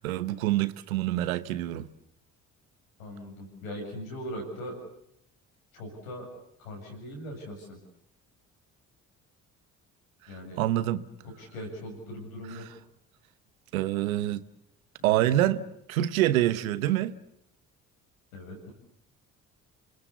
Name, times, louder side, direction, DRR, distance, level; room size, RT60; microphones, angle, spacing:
voice 1, 0.0-1.9 10.6-11.0 12.5-12.6 13.7-14.4 15.0-15.6 15.9-17.1, right 14 dB, 85° right, 1.1 m, -26 dB
voice 2, 3.0-4.8 5.7-6.3 6.6-7.8 10.3-10.6 11.2-12.7 15.0-15.1 15.4-15.5 18.3-18.7, equal, 90° left, 7.7 m, -40 dB
28.0 x 21.0 x 8.3 m
hypercardioid pair, 50°, 40 cm